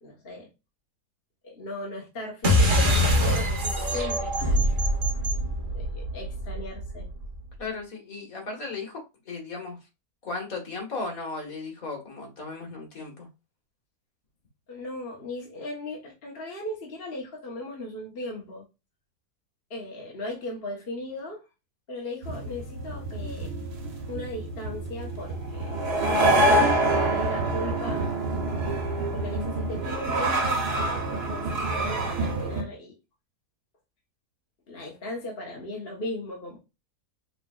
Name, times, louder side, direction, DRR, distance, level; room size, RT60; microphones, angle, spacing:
voice 1, 0.0-0.5 1.4-4.6 5.7-7.1 14.7-18.7 19.7-21.4 21.9-23.7 24.1-28.1 29.1-32.9 34.7-36.6, left 1 dB, 35° left, 1.5 m, -37 dB
sound 1, 2.4-7.3, equal, 35° right, 1.2 m, -24 dB
voice 2, 7.6-9.8 10.2-13.3, left 3 dB, 55° left, 2.2 m, -36 dB
sound 2, 22.2-32.6, right 1 dB, 75° right, 1.9 m, -26 dB
5.8 x 3.4 x 2.4 m
omnidirectional pair, 1.7 m